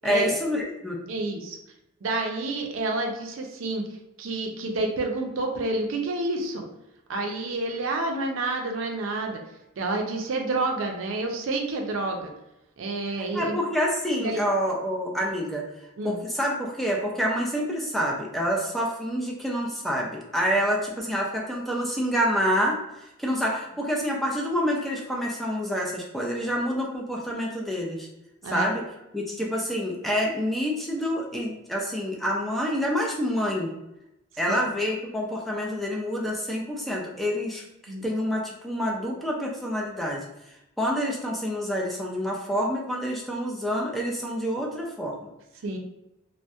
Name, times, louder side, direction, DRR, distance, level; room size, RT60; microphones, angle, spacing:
voice 1, 0.0-1.0 13.3-15.7 16.0-28.1 28.5-28.8 29.1-33.7 34.4-40.3 40.8-45.3, equal, ahead, -2 dB, 0.3 m, -27 dB
voice 2, 1.1-1.6 2.0-3.8 4.2-6.6 7.1-9.4 9.8-12.3 12.8-13.6 14.1-14.5 16.0-16.2 28.4-28.8 34.5-34.6 37.9-38.0 45.6-45.8, right 2 dB, 75° right, 2 dB, 0.4 m, -29 dB
2.6 x 2.1 x 2.3 m, 0.88 s
head